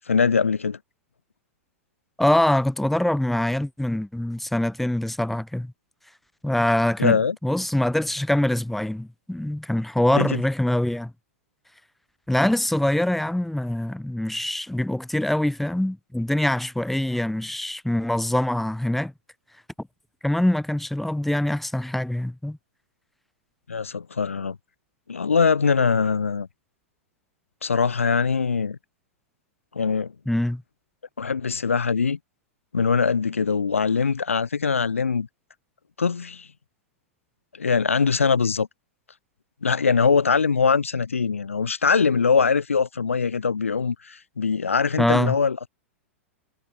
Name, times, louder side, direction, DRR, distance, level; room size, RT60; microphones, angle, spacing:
voice 1, 0.1-0.8 7.0-7.4 10.1-10.4 23.7-24.6 25.1-26.5 27.6-28.8 29.7-30.1 31.2-32.2 32.7-35.3 36.0-36.5 37.6-38.7 39.6-45.6, left 5 dB, 80° left, 0.4 m, -22 dB
voice 2, 2.2-5.7 6.4-11.1 12.3-19.1 20.2-22.6 30.3-30.6 45.0-45.4, left 1 dB, ahead, 0.7 m, -24 dB
figure-of-eight pair, 100°, 7 cm